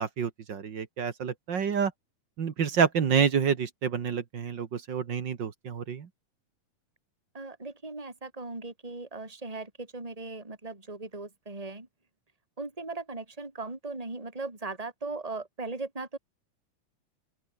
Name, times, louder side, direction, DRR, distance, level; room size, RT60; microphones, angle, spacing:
voice 1, 0.0-1.9 2.4-6.1, right 7 dB, 45° right, 1.6 m, -28 dB
voice 2, 7.3-11.9 12.6-16.2, right 3 dB, 10° right, 4.5 m, -38 dB
open air
omnidirectional pair, 3.8 m